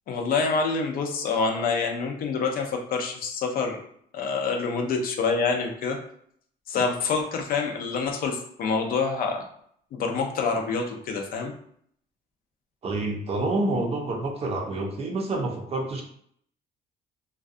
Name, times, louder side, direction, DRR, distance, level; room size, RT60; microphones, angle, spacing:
voice 1, 0.1-3.8 4.1-6.0 6.7-9.4 9.9-11.5, left 4 dB, 60° left, 3 dB, 0.5 m, -26 dB
voice 2, 12.8-16.0, right 2 dB, 35° right, 2 dB, 0.6 m, -28 dB
2.5 x 2.2 x 2.5 m, 0.66 s
cardioid pair, 110°, 17 cm